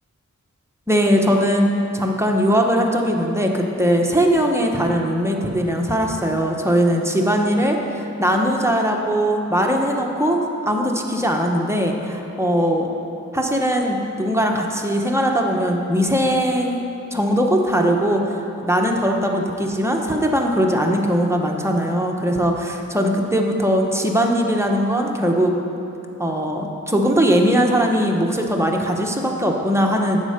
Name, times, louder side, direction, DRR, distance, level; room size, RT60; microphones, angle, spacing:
voice 1, 0.9-10.4 10.7-12.9 13.3-25.5 26.2-30.2, equal, 10° right, 0 dB, 1.1 m, -20 dB
9.9 x 7.7 x 5.1 m, 2.9 s
wide cardioid pair, 60°, 30 cm